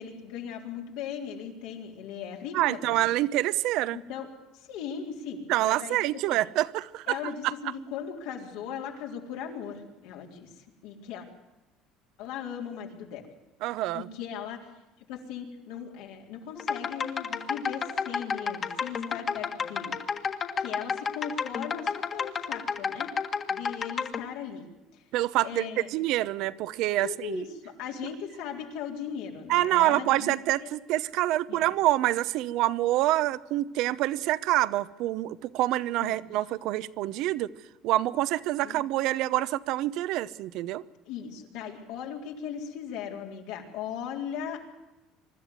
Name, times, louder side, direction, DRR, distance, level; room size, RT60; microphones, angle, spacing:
voice 1, 0.0-3.0 3.9-4.3 4.5-6.0 6.3-6.4 7.1-11.3 12.2-13.3 13.9-14.7 15.1-20.3 20.6-23.1 23.5-24.7 24.9-25.0 25.4-25.9 27.0-30.7 31.5-31.6 36.0-36.2 38.6-38.8 41.1-44.6, left 8 dB, 80° left, 3.8 m, -38 dB
voice 2, 2.5-4.0 5.5-7.5 13.6-14.1 25.1-27.4 29.5-37.5 37.8-40.8, right 15 dB, 65° right, 0.8 m, -26 dB
sound 1, 16.6-24.2, left 6 dB, 30° left, 1.6 m, -31 dB
24.0 x 12.5 x 9.4 m
cardioid pair, 135°, 0 cm